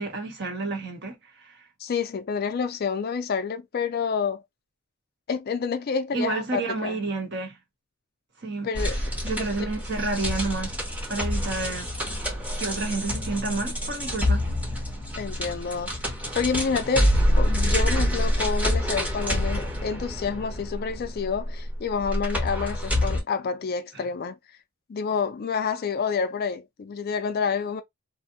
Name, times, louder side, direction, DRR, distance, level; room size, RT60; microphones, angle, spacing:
voice 1, 0.0-1.5 6.1-7.5 8.4-8.7 9.2-10.8 11.1-11.9 12.6-14.4, right 3 dB, 50° right, 0.9 m, -30 dB
voice 2, 1.8-4.4 5.3-7.0 8.6-9.0 9.3-9.4 15.2-24.4 24.9-27.8, left 5 dB, 45° left, 0.3 m, -28 dB
sound 1, 8.7-23.2, equal, 5° right, 0.7 m, -27 dB
2.6 x 2.1 x 2.7 m
head